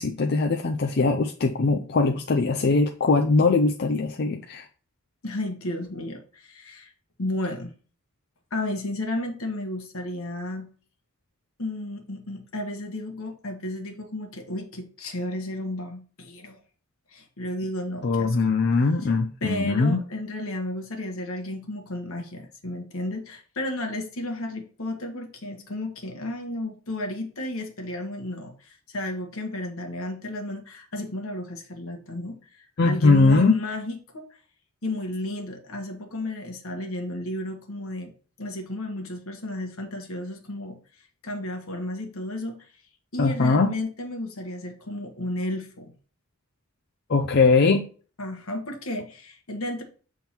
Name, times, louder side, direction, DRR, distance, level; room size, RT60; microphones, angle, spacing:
voice 1, 0.0-4.7 18.0-20.0 32.8-33.6 43.2-43.7 47.1-47.9, left 3 dB, 50° left, 3 dB, 0.5 m, -21 dB
voice 2, 5.2-6.9 7.2-7.7 8.5-10.7 11.6-16.6 17.1-18.3 19.0-19.1 19.4-34.3 34.8-38.1 38.4-40.8 41.2-42.6 43.1-45.9 48.2-49.8, left 1 dB, 70° left, 4 dB, 1.4 m, -33 dB
7.2 x 3.7 x 4.4 m, 0.40 s
head